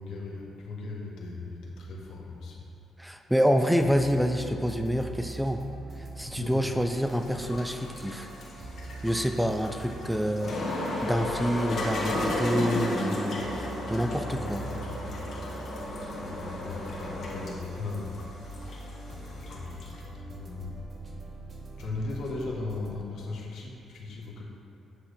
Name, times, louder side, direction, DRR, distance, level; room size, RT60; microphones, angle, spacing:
voice 1, 0.0-2.6 6.3-6.6 14.3-14.9 16.2-18.1 19.3-20.8 21.8-24.5, left 3 dB, 75° left, -2 dB, 1.3 m, -37 dB
voice 2, 3.0-5.6 6.2-8.3 9.0-10.6 11.0-13.5 13.9-14.6, equal, 5° right, 6 dB, 0.4 m, -27 dB
sound 1, 3.8-23.0, right 2 dB, 40° right, 1.0 m, -43 dB
sound 2, 6.9-20.0, left 1 dB, 55° left, 1.5 m, -34 dB
8.5 x 3.2 x 6.4 m, 2.8 s
cardioid pair, 90°, 0 cm